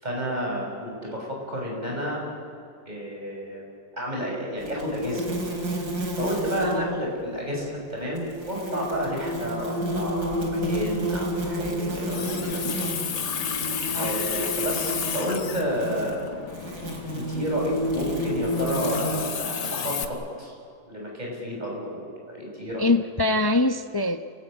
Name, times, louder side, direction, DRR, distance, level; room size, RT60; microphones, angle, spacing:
voice 1, 0.0-2.2 2.9-3.7 3.9-5.2 5.7-5.8 6.1-12.6 13.9-16.3 17.1-20.5 20.9-22.0 22.3-22.9, equal, 25° right, -2 dB, 6.7 m, -31 dB
sound 1, 4.6-6.8 8.2-19.3, equal, 70° right, 4.0 m, -30 dB
voice 2, 6.6-7.0 13.9-14.2 22.8-24.2, left 2 dB, 35° left, 7 dB, 0.4 m, -24 dB
Water tap faucet, 11.9-20.0, left 7 dB, 85° left, 2.0 m, -32 dB
29.5 x 18.5 x 8.9 m, 2.4 s
omnidirectional pair, 1.8 m